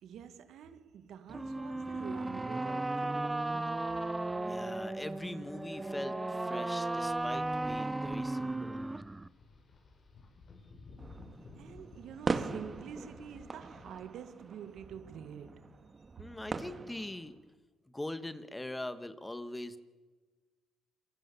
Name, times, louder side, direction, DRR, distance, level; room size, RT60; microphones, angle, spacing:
voice 1, 0.0-4.1 11.6-15.8, right 8 dB, 75° right, 2.0 m, -48 dB
sound 1, 1.3-9.3, right 2 dB, 15° right, 0.8 m, -35 dB
voice 2, 4.4-8.8 16.2-17.4 17.9-19.8, left 1 dB, 10° left, 1.6 m, -42 dB
sound 2, 6.9-14.1, left 3 dB, 50° left, 6.7 m, -56 dB
sound 3, 11.0-17.4, right 4 dB, 35° right, 1.9 m, -41 dB
27.0 x 23.0 x 7.0 m
cardioid pair, 90°, 0 cm